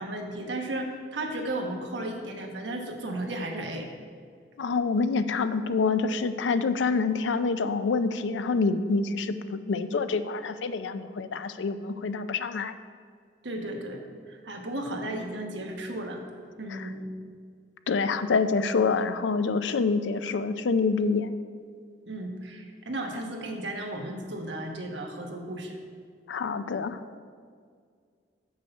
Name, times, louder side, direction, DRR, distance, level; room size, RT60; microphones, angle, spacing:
voice 1, 0.0-3.9 13.4-14.0 14.3-16.2 16.6-17.1 22.1-25.8, right 1 dB, 75° right, 2 dB, 1.1 m, -34 dB
voice 2, 4.6-12.7 16.7-16.9 17.9-21.3 26.3-27.0, left 4 dB, 80° left, 12 dB, 0.4 m, -27 dB
7.0 x 6.3 x 5.3 m, 2.1 s
head